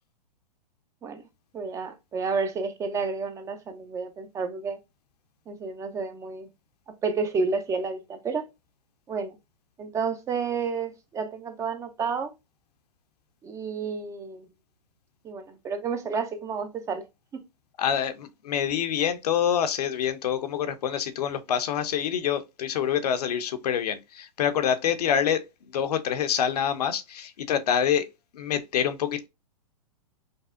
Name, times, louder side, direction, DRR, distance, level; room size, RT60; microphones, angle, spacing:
voice 1, 1.5-4.8 5.5-6.5 6.9-8.5 9.1-9.4 9.8-12.3 13.4-14.5 15.2-17.0, right 5 dB, 15° right, 0.4 m, -30 dB
voice 2, 17.8-25.4 25.7-29.3, left 9 dB, 70° left, 0.7 m, -26 dB
5.2 x 2.0 x 2.4 m
hypercardioid pair, 125°, 21 cm